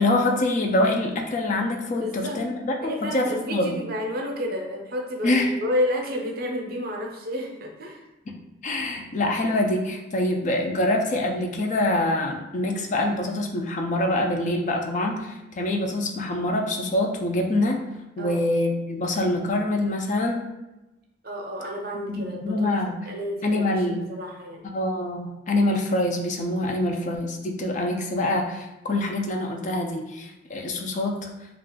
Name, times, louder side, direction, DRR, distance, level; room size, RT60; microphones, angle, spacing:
voice 1, 0.0-3.8 5.2-5.5 8.6-17.8 18.2-20.4 22.1-23.0 23.4-24.1 24.6-31.3, left 1 dB, 40° left, 2 dB, 0.4 m, -25 dB
voice 2, 1.9-2.4 2.8-8.0 18.2-18.4 21.2-22.7 23.1-23.8 24.1-24.7, left 1 dB, 55° right, 0 dB, 0.6 m, -30 dB
2.4 x 2.4 x 3.6 m, 0.99 s
head